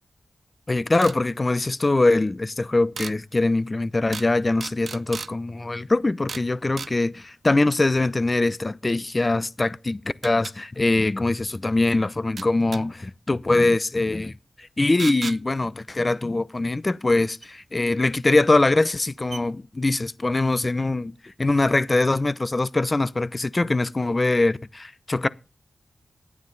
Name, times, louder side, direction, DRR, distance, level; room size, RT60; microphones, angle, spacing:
voice 1, 0.7-25.3, left 2 dB, 40° left, 0.7 m, -23 dB
sound 1, 1.0-1.2 3.0-3.2 4.1-4.3 4.6-5.3 6.3-6.5 6.8-6.9 9.2-9.3 10.2-10.5 12.4-12.8 15.0-15.4 17.4-17.5 18.5-18.6 19.0-19.1 19.3-19.4, right 5 dB, 75° right, 0.5 m, -35 dB
12.0 x 9.5 x 4.0 m
cardioid pair, 40°, 0 cm